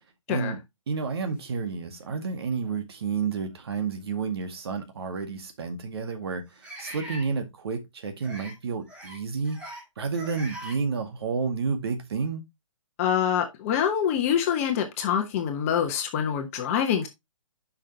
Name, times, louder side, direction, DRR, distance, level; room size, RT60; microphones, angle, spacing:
voice 1, 0.3-0.6 0.9-6.5 6.8-9.6 10.0-12.4, right 5 dB, 50° right, 1.9 m, -30 dB
sound 1, 1.8-1.9 2.7-2.8 4.4-4.5 6.6-7.3 8.2-8.5 8.9-9.2 9.4-9.8 10.1-10.8, equal, 5° right, 1.8 m, -41 dB
voice 2, 13.0-17.1, left 8 dB, 25° left, 1.2 m, -25 dB
8.8 x 5.9 x 2.8 m
figure-of-eight pair, 135°, 17 cm